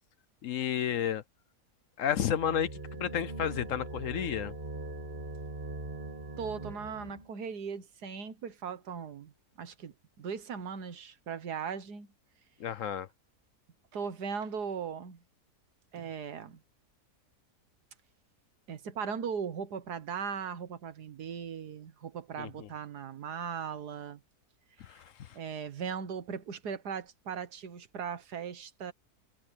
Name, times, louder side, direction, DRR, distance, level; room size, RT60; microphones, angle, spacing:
voice 1, 0.4-1.2 2.0-2.7 3.0-4.5 12.6-13.1 22.4-22.7 24.8-25.3, left 9 dB, 60° left, 1.0 m, -31 dB
sound 1, 2.1-7.3, right 2 dB, 30° right, 2.5 m, -41 dB
voice 2, 6.4-9.3 9.6-12.1 13.9-15.2 15.9-16.6 18.7-24.2 25.3-28.9, right 6 dB, 85° right, 1.9 m, -38 dB
omnidirectional pair, 1.7 m